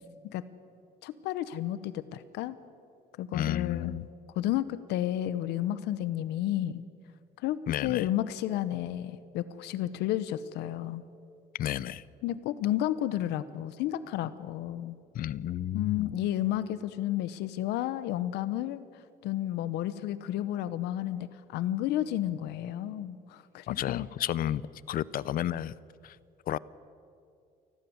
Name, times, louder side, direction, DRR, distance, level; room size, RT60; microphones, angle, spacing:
voice 1, 1.0-2.6 3.2-3.9 4.4-6.8 7.4-11.0 12.2-15.0 15.7-18.8 19.2-24.1, left 13 dB, 85° left, 15 dB, 0.9 m, -32 dB
voice 2, 3.3-4.1 7.7-8.1 11.6-12.0 15.1-16.1 23.7-24.6 24.9-25.7 26.0-26.2 26.5-26.6, left 12 dB, 60° left, 20 dB, 0.7 m, -31 dB
29.5 x 12.5 x 9.6 m, 2.5 s
cardioid pair, 110°, 17 cm